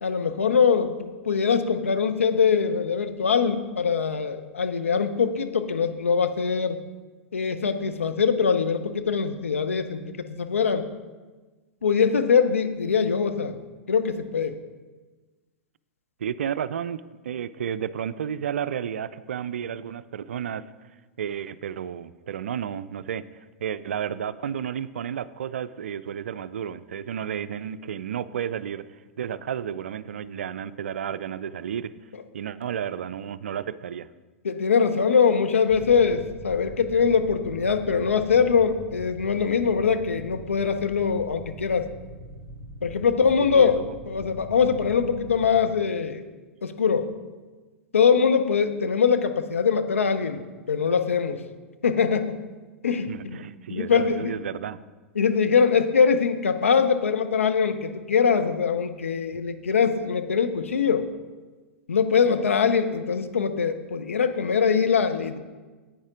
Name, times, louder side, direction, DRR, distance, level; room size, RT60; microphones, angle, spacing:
voice 1, 0.0-6.8 7.3-10.9 11.8-13.6 13.9-14.6 34.4-41.8 42.8-43.8 44.1-46.2 46.6-47.1 47.9-50.4 50.7-51.4 51.8-52.4 52.8-53.4 53.7-54.3 55.2-61.1 61.9-65.4, left 6 dB, 75° left, 8 dB, 0.7 m, -22 dB
voice 2, 16.2-20.6 21.2-23.2 23.6-31.9 32.3-34.1 43.4-43.9 53.1-54.8, right 8 dB, 70° right, 15 dB, 0.4 m, -32 dB
sound 1, 35.7-45.5, right 1 dB, 30° left, 2.2 m, -43 dB
10.0 x 8.7 x 3.8 m, 1.3 s
figure-of-eight pair, 100°, 7 cm